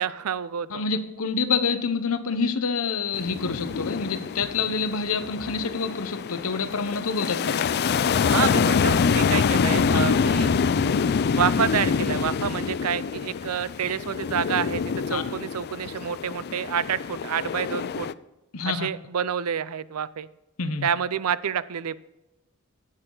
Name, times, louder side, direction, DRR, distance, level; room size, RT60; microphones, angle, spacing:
voice 1, 0.0-0.8 8.2-10.5 11.4-18.1 18.7-20.3 20.8-22.0, right 8 dB, 90° right, 18 dB, 0.5 m, -28 dB
voice 2, 0.7-7.7 9.9-10.0 15.1-15.2 18.5-18.9 20.6-20.9, left 5 dB, 75° left, 11 dB, 1.0 m, -27 dB
sound 1, 3.1-18.1, left 6 dB, 50° left, 0.4 m, -25 dB
17.5 x 6.7 x 3.9 m, 1.0 s
head